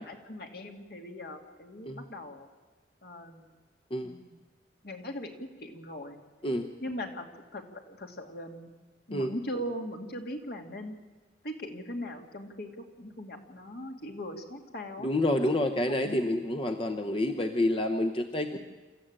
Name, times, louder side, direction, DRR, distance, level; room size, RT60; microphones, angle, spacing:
voice 1, 0.0-2.5 3.0-3.6 4.0-4.4 4.8-6.2 6.8-7.3 7.5-8.7 9.1-11.0 11.4-15.1 16.0-16.2 18.5-18.6, equal, 60° left, 3 dB, 2.5 m, -40 dB
voice 2, 15.0-18.6, left 1 dB, 30° left, 6 dB, 0.9 m, -28 dB
27.5 x 14.0 x 9.0 m, 1.3 s
head